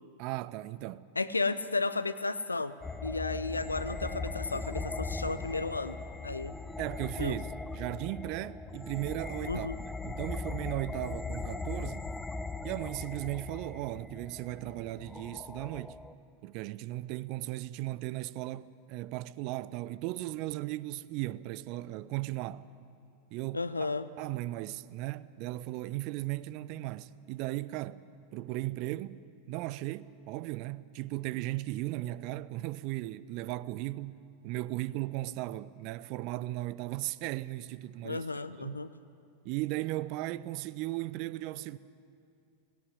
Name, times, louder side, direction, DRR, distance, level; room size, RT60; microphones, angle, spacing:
voice 1, 0.2-1.0 6.8-12.1 12.6-16.0 16.4-22.6 23.3-28.0 28.3-29.2 29.5-38.2 38.6-38.8 39.4-41.8, right 17 dB, 45° right, 0.5 m, -37 dB
voice 2, 1.2-2.7 3.0-6.0 6.2-6.5 7.2-7.4 9.5-9.7 23.5-24.1 38.0-38.9, left 3 dB, 80° left, 0.7 m, -33 dB
sound 1, 2.8-16.1, left 3 dB, 10° left, 0.7 m, -39 dB
17.5 x 17.0 x 9.6 m
figure-of-eight pair, 90°, 0 cm